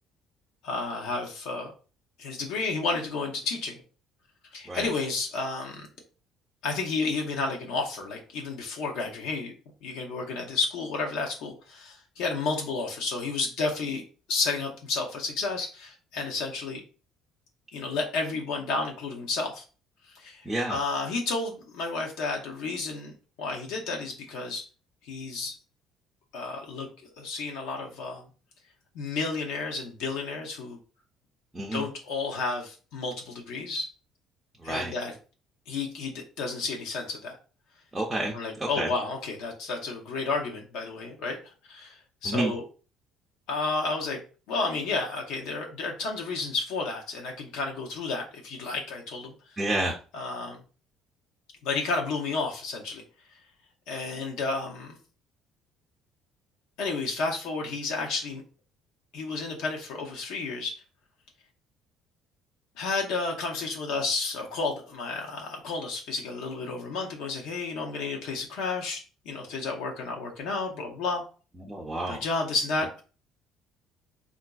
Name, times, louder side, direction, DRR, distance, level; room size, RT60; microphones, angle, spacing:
voice 1, 0.6-1.7 2.2-3.8 4.5-5.9 6.6-9.5 9.8-14.0 14.3-16.8 17.7-19.6 20.1-24.6 25.0-25.5 26.3-26.9 27.2-28.3 28.9-30.8 31.7-33.9 34.6-35.1 35.7-37.4 38.3-41.4 41.7-42.6 43.5-44.2 44.5-49.6 50.1-50.6 51.6-53.0 53.9-55.0 56.8-58.4 59.1-60.7 62.8-71.2 72.1-73.0, left 3 dB, 80° left, 1 dB, 0.6 m, -31 dB
voice 2, 20.4-20.8 31.5-31.8 34.6-34.9 37.9-38.9 42.2-42.5 49.6-50.0 71.6-72.2, right 1 dB, 5° right, -2 dB, 0.4 m, -30 dB
3.9 x 2.4 x 2.2 m, 0.36 s
cardioid pair, 175°, 0 cm